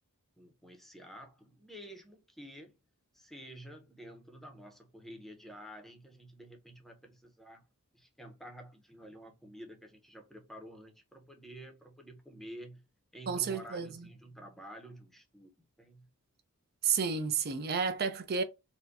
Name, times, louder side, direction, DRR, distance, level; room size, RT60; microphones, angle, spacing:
voice 1, 0.4-2.8 3.1-7.6 7.9-12.8 13.1-15.5 15.8-16.1, equal, ahead, 0.7 m, -50 dB
voice 2, 13.3-14.1 16.8-18.4, right 6 dB, 45° right, 0.5 m, -31 dB
4.2 x 2.2 x 2.5 m
head